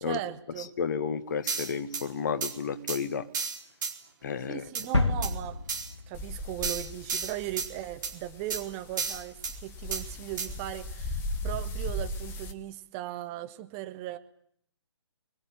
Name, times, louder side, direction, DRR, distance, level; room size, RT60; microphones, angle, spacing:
voice 1, 0.0-0.7 4.5-5.6 6.1-14.2, right 14 dB, 20° right, 8 dB, 1.4 m, -38 dB
voice 2, 0.6-3.3 4.2-4.7, left 6 dB, 40° left, 12 dB, 1.7 m, -32 dB
sound 1, 1.5-2.0 2.4-2.5 2.9-3.0 3.3-3.9 4.7-4.9 5.2-5.3 5.7-5.9 6.6-7.7 8.0-8.1 8.5-8.6 9.0-9.5 9.9-10.0 10.4-10.5, right 5 dB, 40° right, 4.4 m, -32 dB
sound 2, 4.9-6.8 7.1-7.2, left 3 dB, 75° left, 2.5 m, -30 dB
sound 3, 6.1-12.5, left 1 dB, 15° left, 1.8 m, -38 dB
25.0 x 22.0 x 8.8 m, 0.66 s
figure-of-eight pair, 135°, 15 cm